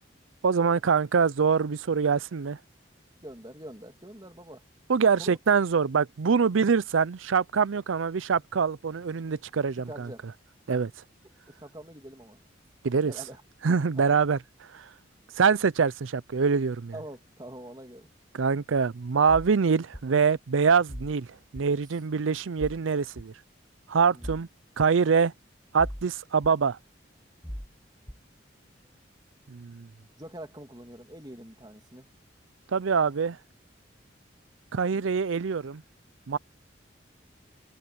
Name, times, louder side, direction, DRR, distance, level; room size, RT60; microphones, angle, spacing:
voice 1, 0.4-2.6 4.9-10.1 10.7-10.9 12.8-13.1 13.6-14.4 14.7-14.9 15.4-16.9 18.3-21.3 21.5-23.3 23.9-24.5 24.8-25.3 25.7-26.8 29.5-29.9 32.7-33.4 34.7-35.8 36.3-36.4, right 5 dB, 90° right, 0.5 m, -24 dB
voice 2, 3.2-4.6 5.2-5.4 9.7-10.2 11.5-12.4 13.0-13.4 13.9-14.2 15.3-15.4 16.9-18.1 24.1-24.4 30.2-32.1, right 1 dB, 20° right, 2.8 m, -44 dB
sound 1, 19.3-19.5 19.9-20.1 20.9-21.1 21.6-21.7 22.6-22.8 23.2-23.3 24.2-24.4 24.8-24.9 25.8-26.1 26.4-26.5 27.4-27.7 28.1-28.2, equal, 10° left, 1.6 m, -38 dB
head